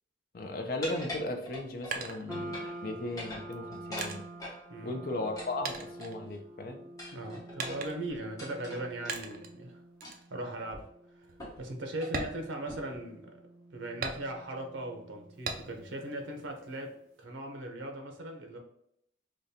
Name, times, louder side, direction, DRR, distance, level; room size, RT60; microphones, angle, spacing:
voice 1, 0.3-4.2 4.8-6.8, left 2 dB, 50° left, 4 dB, 0.5 m, -36 dB
sound 1, 0.8-2.0 2.3-2.8 3.1-4.6 5.4-6.4 7.0-9.2 10.0-10.3 10.7-10.8 11.4-11.7 11.9-12.2 12.7-13.0, left 1 dB, 20° left, 0.9 m, -43 dB
sound 2, 1.4-2.9 3.5-5.4 5.6-6.8 7.6-8.2 9.1-9.6 10.0-10.3 10.7-10.8 11.2-11.4 12.0-13.2 14.0-14.7 15.4-16.0 16.4-17.2, right 4 dB, 50° right, 0.4 m, -40 dB
sound 3, 2.3-16.7, right 1 dB, 5° right, 0.8 m, -48 dB
voice 2, 4.7-5.0 7.1-9.8 10.3-10.9 11.2-11.3 11.6-13.3 13.7-16.9 17.2-18.6, right 1 dB, 85° right, 3 dB, 0.7 m, -39 dB
5.0 x 2.2 x 2.7 m, 0.73 s
head